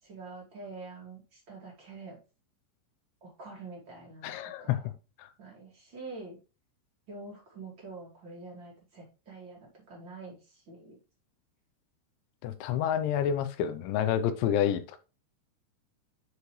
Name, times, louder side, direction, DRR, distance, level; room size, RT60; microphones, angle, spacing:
voice 1, 0.0-2.2 3.2-4.3 4.6-4.9 5.4-6.4 7.1-11.0, right 3 dB, 35° right, -2 dB, 2.1 m, -46 dB
voice 2, 4.2-4.8 5.2-5.3 12.4-15.0, left 9 dB, 80° left, 11 dB, 2.9 m, -29 dB
9.4 x 4.9 x 3.2 m, 0.31 s
omnidirectional pair, 5.6 m